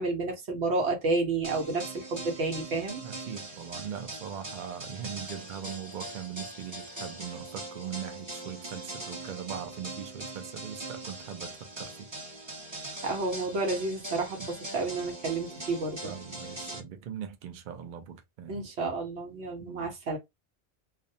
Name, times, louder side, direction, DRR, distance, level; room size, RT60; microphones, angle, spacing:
voice 1, 0.0-3.0 13.0-16.1 18.5-20.2, right 3 dB, 80° right, 1.1 m, -30 dB
sound 1, 1.4-16.8, right 2 dB, 25° right, 0.9 m, -41 dB
voice 2, 3.0-12.1 14.4-14.5 16.0-18.6 19.6-19.9, right 8 dB, 55° right, 0.6 m, -40 dB
2.5 x 2.0 x 2.6 m
omnidirectional pair, 1.1 m